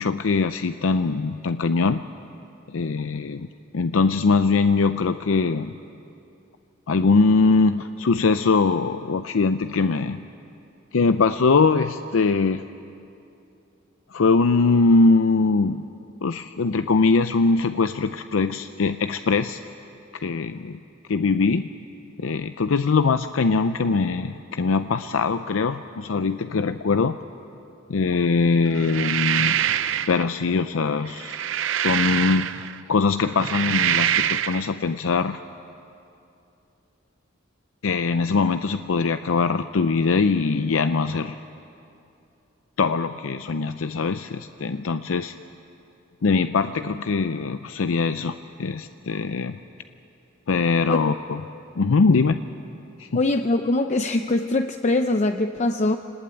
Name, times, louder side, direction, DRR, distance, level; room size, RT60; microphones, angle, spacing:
voice 1, 0.0-2.0 2.7-3.5 3.7-5.7 6.9-10.2 10.9-12.6 14.1-15.8 16.2-19.6 20.1-20.8 21.1-21.7 22.2-27.2 27.9-29.6 30.1-31.4 31.8-35.4 37.8-41.4 42.8-45.3 46.2-49.6 50.5-51.4 51.8-52.4 53.0-53.1, left 4 dB, 80° left, 10 dB, 0.5 m, -22 dB
sound 1, 28.7-30.2 31.0-32.8 33.3-34.7, right 10 dB, 70° right, 0.6 m, -24 dB
voice 2, 53.1-56.0, left 2 dB, 35° left, 6 dB, 0.6 m, -22 dB
25.0 x 19.5 x 9.0 m, 2.7 s
head